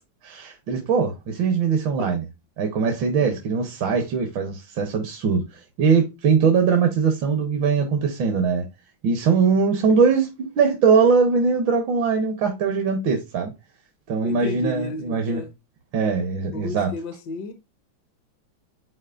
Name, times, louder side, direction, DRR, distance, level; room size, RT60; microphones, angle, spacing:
voice 1, 0.2-2.2 2.6-8.6 9.0-13.5 14.1-15.4 15.9-16.9, right 5 dB, 75° right, 1.7 m, -21 dB
voice 2, 14.2-15.5 16.5-17.5, left 3 dB, 65° left, 1.3 m, -33 dB
9.1 x 4.2 x 2.4 m
omnidirectional pair, 2.1 m